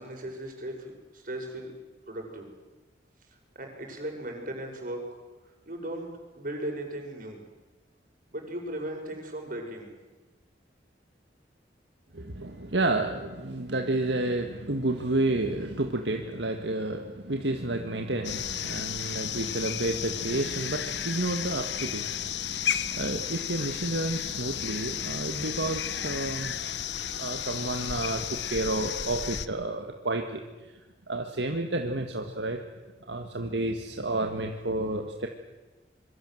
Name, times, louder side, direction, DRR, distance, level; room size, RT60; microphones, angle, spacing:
voice 1, 0.0-1.7 2.1-2.5 3.5-5.0 5.6-7.4 8.3-9.9, right 1 dB, 50° right, 2 dB, 6.5 m, -37 dB
voice 2, 12.1-26.8 27.2-30.8 31.1-32.6 33.1-35.3, right 2 dB, 70° right, 4 dB, 1.8 m, -30 dB
sound 1, 18.2-29.5, left 9 dB, 70° left, 1.1 m, -33 dB
26.0 x 23.5 x 7.9 m, 1.1 s
head